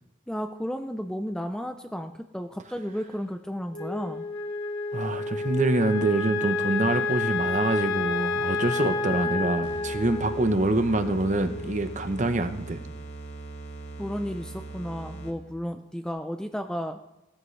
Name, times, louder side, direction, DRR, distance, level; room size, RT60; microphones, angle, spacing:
voice 1, 0.3-4.2 14.0-17.0, equal, 5° left, 6 dB, 0.4 m, -33 dB
Wind instrument woodwind instrument, 3.7-12.2, left 3 dB, 75° left, 2.8 m, -30 dB
voice 2, 4.9-12.8, right 2 dB, 35° right, 9 dB, 0.8 m, -26 dB
sound 1, 9.6-15.5, right 2 dB, 55° left, 1.7 m, -40 dB
16.0 x 13.0 x 3.2 m, 0.95 s
head